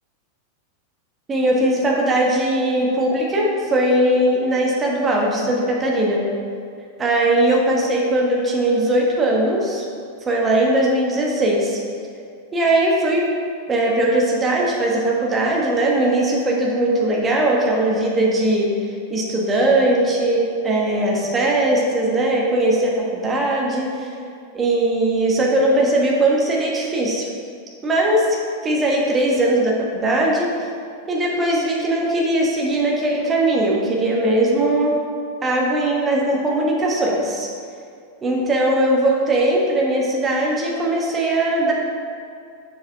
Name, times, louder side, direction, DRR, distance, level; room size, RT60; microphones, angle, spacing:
voice 1, 1.3-6.2 7.0-9.8 10.2-11.8 12.5-13.3 13.7-24.1 24.5-27.3 27.8-28.4 28.6-30.5 31.1-35.0 35.4-37.5 38.2-41.7, right 1 dB, 20° right, -2 dB, 1.4 m, -19 dB
7.2 x 6.5 x 3.4 m, 2.4 s
figure-of-eight pair, 90°, 0 cm